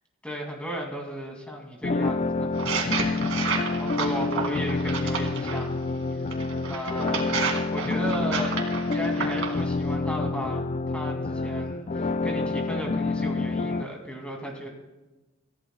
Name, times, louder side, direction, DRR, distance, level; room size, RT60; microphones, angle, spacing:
voice 1, 0.2-2.5 3.8-5.8 6.1-6.2 6.7-7.2 7.7-14.7, equal, 5° left, 0 dB, 2.5 m, -35 dB
sound 1, 1.8-13.8, left 3 dB, 35° left, 0.3 m, -28 dB
sound 2, 2.5-5.6 6.3-9.6, right 5 dB, 65° right, 2.4 m, -31 dB
27.5 x 15.0 x 2.3 m, 1.1 s
head